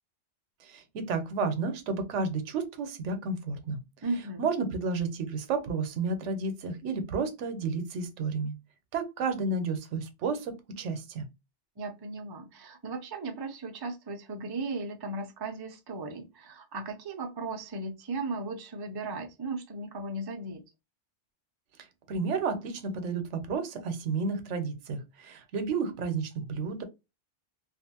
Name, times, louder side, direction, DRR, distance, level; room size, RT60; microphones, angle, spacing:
voice 1, 0.6-3.8 4.4-8.5 8.9-11.3 22.1-26.8, right 4 dB, 80° right, 0.9 m, -31 dB
voice 2, 4.0-4.5 11.8-20.6, right 3 dB, 40° right, 0.3 m, -36 dB
2.5 x 2.4 x 2.7 m
omnidirectional pair, 1.2 m